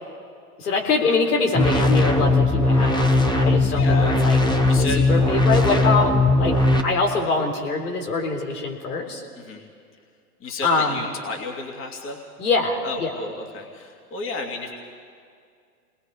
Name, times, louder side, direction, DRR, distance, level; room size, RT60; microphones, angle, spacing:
voice 1, 0.6-4.6 5.1-6.5 6.8-9.2 10.6-11.0 12.4-13.1, left 3 dB, 75° left, 0 dB, 3.9 m, -24 dB
sound 1, 1.5-6.8, left 2 dB, 10° left, 1.4 m, -19 dB
voice 2, 3.7-4.2 4.7-5.0 9.3-9.6 10.4-12.2 12.8-14.7, left 3 dB, 25° left, 2 dB, 2.6 m, -32 dB
28.5 x 20.0 x 4.9 m, 2.2 s
hypercardioid pair, 100°, 45 cm